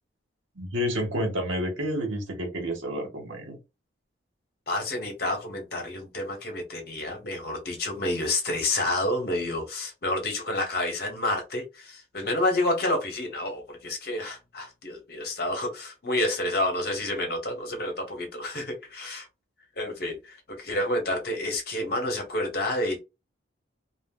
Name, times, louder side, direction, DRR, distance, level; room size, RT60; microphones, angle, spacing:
voice 1, 0.5-3.6, equal, 85° right, 1.1 m, -29 dB
voice 2, 4.7-19.3 19.8-23.0, left 1 dB, 50° left, 0.9 m, -29 dB
2.4 x 2.0 x 3.6 m
head